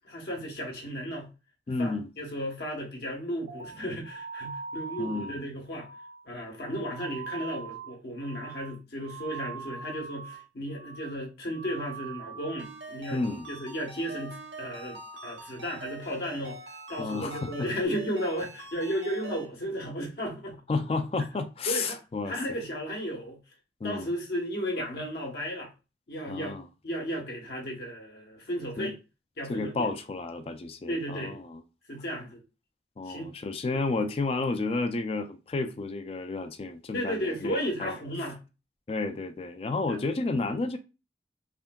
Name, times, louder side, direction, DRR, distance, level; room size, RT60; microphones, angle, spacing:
voice 1, 0.0-1.3 1.8-5.9 6.2-13.2 13.5-16.6 16.9-20.6 21.7-22.0 22.2-23.4 23.8-25.7 26.1-26.6 26.8-29.0 29.4-29.9 30.9-31.4 31.9-32.4 33.0-33.3 36.9-38.4 39.9-40.0, equal, 60° left, 1.0 m, -34 dB
voice 2, 1.7-2.1 5.0-5.4 13.1-13.5 17.0-17.7 20.7-22.6 23.8-24.1 26.3-26.7 28.8-28.9 29.5-31.6 33.0-37.9 38.9-40.8, left 3 dB, 35° left, 0.3 m, -31 dB
sound 1, 3.5-10.5 10.7-11.2 11.5-13.0 13.2-13.7 14.0-15.5 15.8-16.2 16.5-17.9, right 5 dB, 45° right, 0.4 m, -43 dB
Ringtone, 12.6-19.5, right 3 dB, 85° right, 0.7 m, -45 dB
3.4 x 2.6 x 2.2 m
head